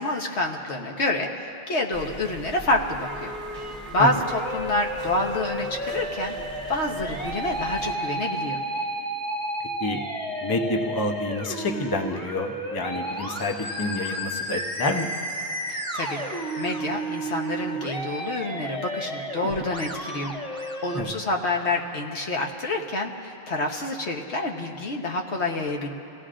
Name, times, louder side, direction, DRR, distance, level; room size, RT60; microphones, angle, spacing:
voice 1, 0.0-3.3 3.9-6.4 6.7-8.6 15.7-16.2 16.6-25.9, left 2 dB, 80° left, 1 dB, 1.4 m, -28 dB
sound 1, 1.9-8.0, right 2 dB, 35° right, 1.4 m, -42 dB
Musical instrument, 3.0-21.0, right 1 dB, 5° left, 1.3 m, -32 dB
voice 2, 10.4-15.1 20.9-21.1, left 2 dB, 25° left, 2 dB, 0.7 m, -28 dB
29.0 x 17.0 x 2.5 m, 2.8 s
omnidirectional pair, 1.1 m